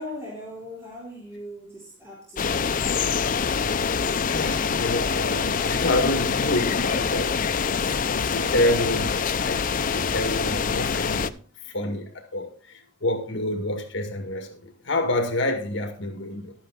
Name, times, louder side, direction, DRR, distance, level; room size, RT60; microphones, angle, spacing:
voice 1, 0.0-2.9, left 1 dB, 15° right, 3.7 m, -39 dB
sound 1, 2.4-11.3, left 6 dB, 45° left, 0.5 m, -25 dB
voice 2, 4.2-7.3 7.7-7.8 8.1-11.4 11.7-16.5, left 1 dB, 65° left, 2.0 m, -28 dB
12.0 x 8.6 x 4.1 m
head